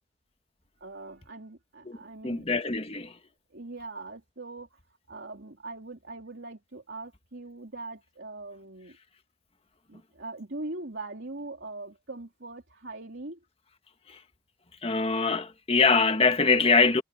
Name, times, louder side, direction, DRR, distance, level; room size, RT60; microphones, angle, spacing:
voice 1, 0.8-2.4 3.5-4.8 5.1-9.0 9.9-13.4, right 2 dB, 85° right, 2.9 m, -41 dB
voice 2, 2.2-3.1 14.8-17.0, left 4 dB, 35° left, 1.5 m, -23 dB
head